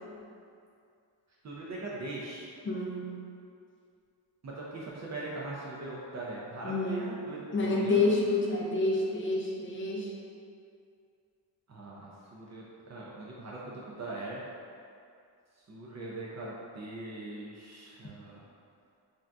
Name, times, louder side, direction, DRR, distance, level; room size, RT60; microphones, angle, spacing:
voice 1, 1.4-2.5 4.4-8.0 11.7-14.4 15.6-18.4, right 2 dB, 40° right, -5 dB, 0.4 m, -41 dB
voice 2, 2.7-3.1 6.6-7.1 7.5-10.1, left 2 dB, 30° left, -2 dB, 0.4 m, -28 dB
3.5 x 2.5 x 2.2 m, 2.4 s
cardioid pair, 120°, 45 cm